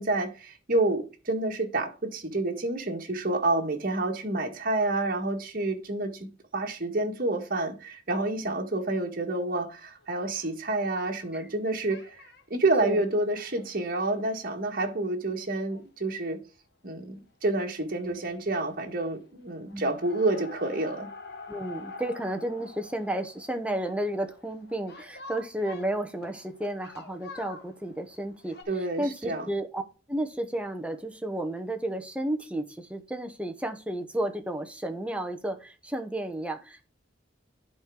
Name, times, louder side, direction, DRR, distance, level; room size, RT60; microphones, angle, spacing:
voice 1, 0.0-6.3 6.5-12.2 12.5-16.4 16.8-21.1 28.7-29.5, right 2 dB, 50° right, 1.7 m, -29 dB
sound 1, 10.0-11.6 11.9-12.4 12.9-15.0 15.4-15.5 15.7-15.8 16.1-16.2 17.6-17.8 18.0-18.5 18.8-19.3 19.7-28.6, left 3 dB, 60° left, 1.4 m, -47 dB
voice 2, 21.5-29.8 30.1-36.9, right 1 dB, 5° right, 1.0 m, -32 dB
10.5 x 4.6 x 3.8 m
head